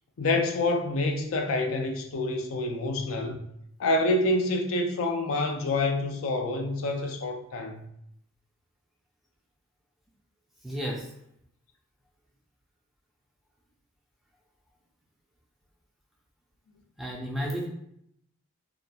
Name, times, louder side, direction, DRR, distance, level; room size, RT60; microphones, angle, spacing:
voice 1, 0.2-3.4 3.8-7.8, left 2 dB, 75° left, 0.4 m, -27 dB
voice 2, 10.6-11.1 17.0-17.7, equal, ahead, 0.3 m, -32 dB
2.8 x 2.3 x 2.2 m
head